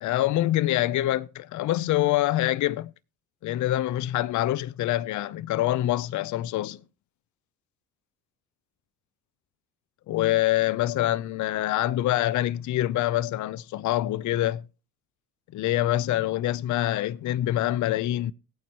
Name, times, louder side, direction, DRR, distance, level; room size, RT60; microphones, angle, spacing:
voice 1, 0.0-2.9 3.4-6.8 10.1-14.6 15.5-18.3, left 14 dB, 40° left, 0.6 m, -25 dB
18.0 x 9.2 x 2.9 m
hypercardioid pair, 55°, 45 cm